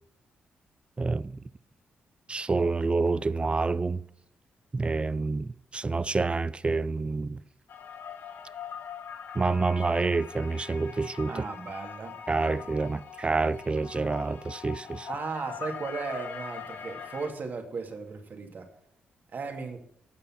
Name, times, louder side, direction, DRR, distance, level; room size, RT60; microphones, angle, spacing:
voice 1, 1.0-1.4 2.3-4.0 4.7-7.4 9.3-11.5 12.3-15.1, right 3 dB, 30° right, 0.5 m, -28 dB
sound 1, 7.7-17.3, left 7 dB, 70° left, 1.2 m, -42 dB
voice 2, 11.3-12.1 15.1-18.7 19.3-19.8, right 4 dB, 55° right, 2.4 m, -36 dB
15.5 x 5.6 x 5.8 m
supercardioid pair, 55°, 4 cm